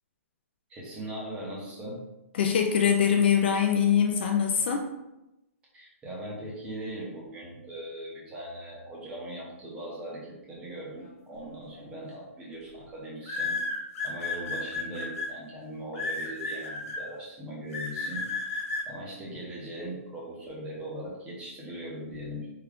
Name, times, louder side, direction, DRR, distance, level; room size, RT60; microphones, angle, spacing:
voice 1, 0.7-2.0 5.7-13.6 14.0-22.5, right 1 dB, 10° right, -4 dB, 0.8 m, -40 dB
voice 2, 2.3-4.9, left 7 dB, 45° left, 3 dB, 0.4 m, -23 dB
sound 1, 11.7-12.0 13.2-15.3 15.9-17.0 17.7-18.8, left 3 dB, 65° left, 1.2 m, -32 dB
3.6 x 2.3 x 3.5 m, 0.92 s
hypercardioid pair, 165°, 8 cm